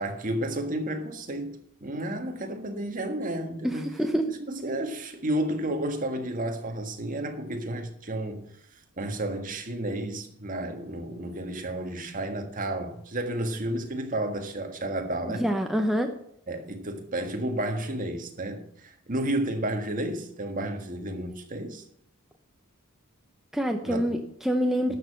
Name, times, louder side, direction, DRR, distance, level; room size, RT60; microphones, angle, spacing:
voice 1, 0.0-3.9 4.5-8.5 9.0-15.4 16.5-21.8 23.8-24.2 24.9-25.0, right 1 dB, 40° right, 1.6 m, -32 dB
voice 2, 3.6-4.2 15.4-16.1 23.5-24.9, equal, ahead, 0.8 m, -26 dB
12.0 x 6.6 x 7.6 m
head